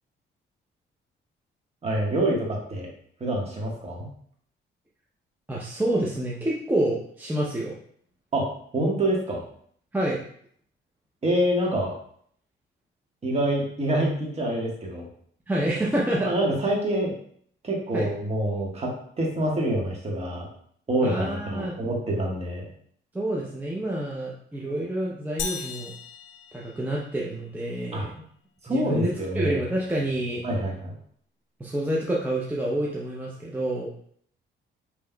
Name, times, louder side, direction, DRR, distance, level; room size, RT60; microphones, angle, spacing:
voice 1, 1.8-2.9 3.2-4.1 8.3-9.4 11.2-11.9 13.2-15.1 16.2-17.1 17.6-20.5 20.9-22.7 27.9-28.1 28.6-29.6 30.4-30.9, right 1 dB, 30° right, -2 dB, 1.3 m, -26 dB
voice 2, 5.5-7.7 9.9-10.2 15.5-16.3 17.9-18.1 21.0-21.7 23.1-25.9 26.5-28.2 28.7-30.4 31.6-33.9, right 1 dB, 10° right, -4 dB, 0.6 m, -28 dB
sound 1, 25.4-27.3, left 6 dB, 85° left, 0.5 m, -36 dB
5.5 x 3.0 x 2.2 m, 0.62 s
cardioid pair, 90°, 20 cm